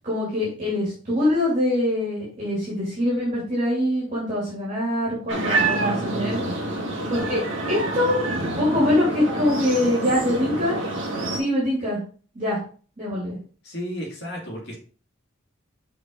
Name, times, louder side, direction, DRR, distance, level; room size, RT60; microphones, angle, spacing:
voice 1, 0.0-6.4 7.1-8.2 8.5-10.8 11.3-12.0 12.3-12.6 13.0-13.4, left 1 dB, 35° right, -7 dB, 2.7 m, -24 dB
sound 1, 5.3-11.4, right 2 dB, 70° right, 1.7 m, -27 dB
voice 2, 5.7-6.5 13.6-14.8, equal, 55° left, -1 dB, 2.5 m, -34 dB
6.1 x 4.8 x 3.8 m, 0.41 s
head